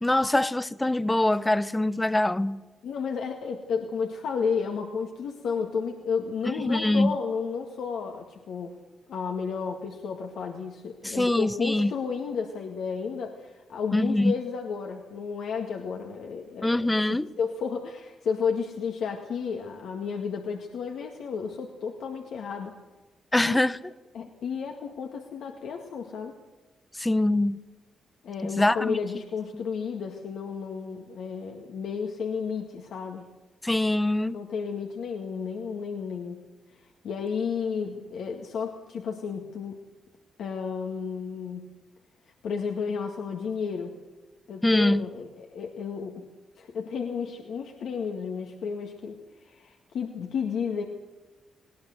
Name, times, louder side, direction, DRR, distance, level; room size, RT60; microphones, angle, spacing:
voice 1, 0.0-2.6 6.4-7.1 11.0-11.9 13.9-14.3 16.6-17.3 23.3-23.8 27.0-27.6 28.4-29.0 33.6-34.4 44.6-45.1, left 1 dB, 15° left, 0.9 m, -24 dB
voice 2, 2.8-8.8 9.1-22.7 23.5-23.6 24.1-26.3 28.2-33.3 34.3-36.4 36.7-39.8 40.4-41.7 42.4-43.9 44.5-46.3 46.6-50.8, left 6 dB, 70° left, 2.0 m, -32 dB
19.0 x 18.5 x 7.9 m
supercardioid pair, 50°, 0 cm